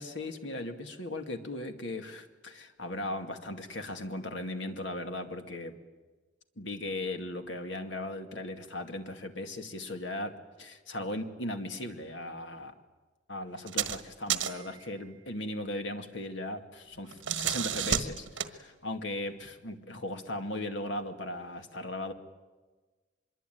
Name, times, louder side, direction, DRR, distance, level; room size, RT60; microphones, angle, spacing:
voice 1, 0.0-5.7 6.6-12.7 13.3-22.1, left 1 dB, 75° left, 6 dB, 2.3 m, -37 dB
sound 1, 13.6-14.0 14.3-14.7 17.0-18.6, right 9 dB, 75° right, 1.5 m, -31 dB
25.0 x 22.5 x 9.4 m, 1.3 s
head